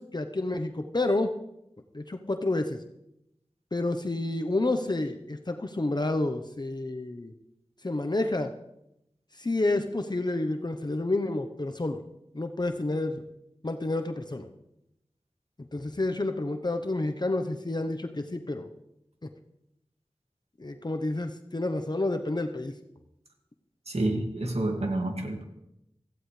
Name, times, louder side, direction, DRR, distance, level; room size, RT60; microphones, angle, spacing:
voice 1, 0.0-1.3 1.9-2.8 3.7-7.3 7.8-8.5 9.4-12.0 12.3-13.2 13.6-14.5 15.7-18.7 20.6-22.7, left 2 dB, 45° left, 6 dB, 0.9 m, -29 dB
voice 2, 23.9-25.4, right 1 dB, 85° right, 2 dB, 2.1 m, -29 dB
17.0 x 15.0 x 3.3 m, 0.84 s
wide cardioid pair, 40°, 10 cm